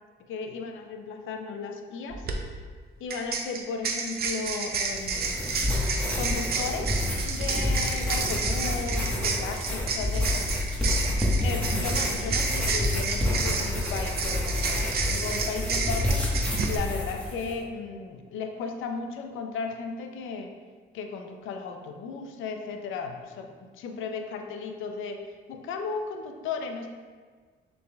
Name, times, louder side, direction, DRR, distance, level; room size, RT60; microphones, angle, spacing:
voice 1, 0.3-2.3 3.0-5.5 6.1-10.5 11.4-16.3 16.7-20.5 20.9-23.5 23.8-25.2 25.5-26.9, left 5 dB, 85° left, 4 dB, 0.5 m, -35 dB
sound 1, 2.1-2.3 3.1-16.8, right 5 dB, 50° right, 0.6 m, -31 dB
sound 2, 4.8-17.5, left 1 dB, 5° left, 1.1 m, -28 dB
6.3 x 3.4 x 2.2 m, 1.5 s
cardioid pair, 90°, 20 cm